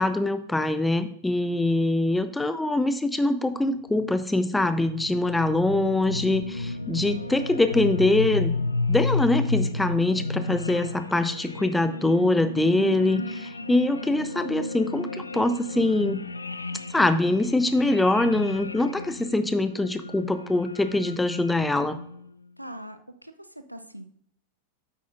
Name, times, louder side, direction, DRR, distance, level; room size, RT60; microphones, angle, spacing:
voice 1, 0.0-8.5 8.9-16.2 16.9-22.0, left 2 dB, 5° left, 11 dB, 0.6 m, -24 dB
sound 1, 3.9-22.3, left 3 dB, 80° left, 0.3 m, -32 dB
voice 2, 22.6-23.3 23.7-24.1, equal, 90° right, 9 dB, 0.6 m, -41 dB
8.5 x 8.4 x 2.6 m, 0.66 s
figure-of-eight pair, 90°, 0 cm